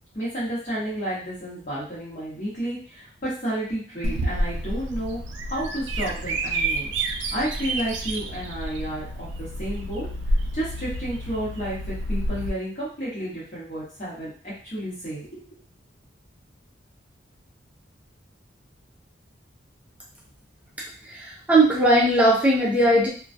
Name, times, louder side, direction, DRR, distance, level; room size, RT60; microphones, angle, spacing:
voice 1, 0.1-5.2 5.5-6.9 7.3-10.1 10.5-15.4, right 1 dB, 40° left, -9 dB, 0.9 m, -31 dB
Bird vocalization bird call bird song, 4.0-12.5, right 1 dB, 75° right, 0.3 m, -29 dB
voice 2, 21.0-23.1, right 1 dB, 10° right, -4 dB, 0.4 m, -19 dB
2.2 x 2.2 x 2.5 m, 0.42 s
head